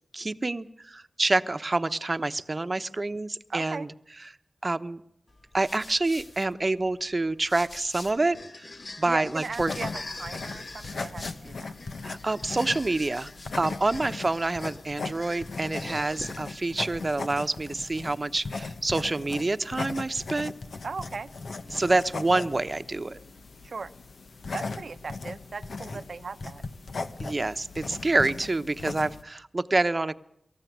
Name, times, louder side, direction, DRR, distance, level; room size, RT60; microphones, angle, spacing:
voice 1, 0.1-3.9 4.6-5.0 5.5-8.7 9.0-9.7 12.0-13.3 13.6-20.5 21.7-23.2 27.2-30.1, right 2 dB, 40° right, 11 dB, 1.0 m, -27 dB
voice 2, 3.5-3.9 9.0-11.7 20.8-21.3 23.6-23.9 24.5-26.6, right 4 dB, 75° right, 12 dB, 0.9 m, -38 dB
sound 1, 5.3-8.4 8.7-11.9 12.4-13.7, left 2 dB, 50° left, 2.5 m, -49 dB
sound 2, 8.1-16.7, left 3 dB, 65° left, 2.1 m, -44 dB
sound 3, 9.6-29.2, left 3 dB, 85° left, 1.5 m, -38 dB
25.0 x 14.5 x 9.4 m, 0.72 s
wide cardioid pair, 80°, 0 cm